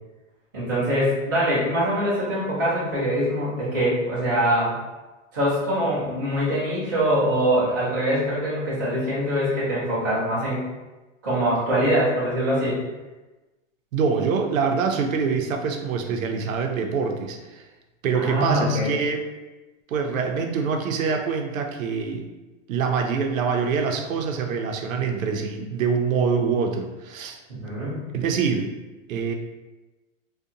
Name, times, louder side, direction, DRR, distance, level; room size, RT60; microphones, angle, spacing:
voice 1, 0.5-4.8 5.3-10.6 11.2-12.8 18.1-18.9 27.5-28.0, equal, 15° right, -11 dB, 0.4 m, -23 dB
voice 2, 13.9-17.6 18.0-19.3 19.9-22.2 22.7-27.4 28.1-28.7 29.1-29.3, right 5 dB, 90° right, 4 dB, 0.6 m, -25 dB
2.6 x 2.2 x 2.5 m, 1.1 s
hypercardioid pair, 170°, 39 cm